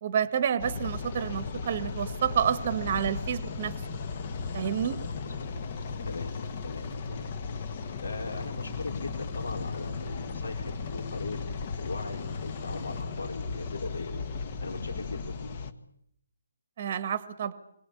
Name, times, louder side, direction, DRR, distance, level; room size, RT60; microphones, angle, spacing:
voice 1, 0.0-3.7 4.5-5.0 16.8-17.5, right 8 dB, 25° right, 13 dB, 1.5 m, -29 dB
sound 1, 0.6-15.7, left 4 dB, 25° left, 1.4 m, -36 dB
voice 2, 6.6-7.3 7.6-11.4 11.8-14.1 14.6-15.5, left 3 dB, 80° left, 1 dB, 5.3 m, -39 dB
27.5 x 22.0 x 8.5 m, 0.73 s
hypercardioid pair, 180°, 0 cm